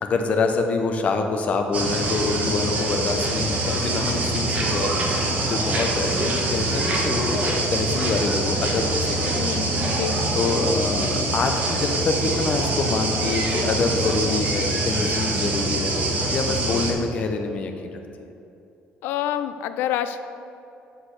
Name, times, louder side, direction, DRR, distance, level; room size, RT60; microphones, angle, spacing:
voice 1, 0.0-9.6 10.3-15.9 16.3-18.3, left 3 dB, 40° left, 4 dB, 0.8 m, -26 dB
sound 1, 1.7-16.9, right 2 dB, 40° right, 1.2 m, -24 dB
voice 2, 9.3-10.2 19.0-20.2, left 10 dB, 85° left, 10 dB, 0.4 m, -27 dB
8.2 x 4.0 x 6.5 m, 2.7 s
cardioid pair, 140°, 4 cm